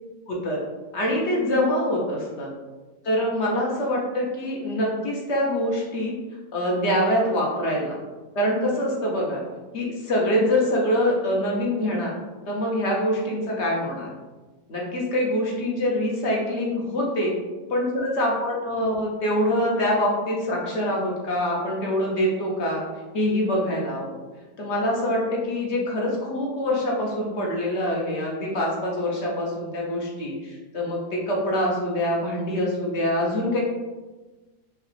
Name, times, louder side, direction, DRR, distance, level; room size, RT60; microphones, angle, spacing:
voice 1, 0.3-0.6 0.9-2.5 3.0-6.1 6.5-8.0 8.3-9.4 9.7-12.1 12.5-14.1 14.7-17.4 17.7-22.8 23.1-24.2 24.6-33.6, left 1 dB, 50° left, -2 dB, 1.0 m, -25 dB
4.8 x 2.4 x 3.3 m, 1.2 s
omnidirectional pair, 1.7 m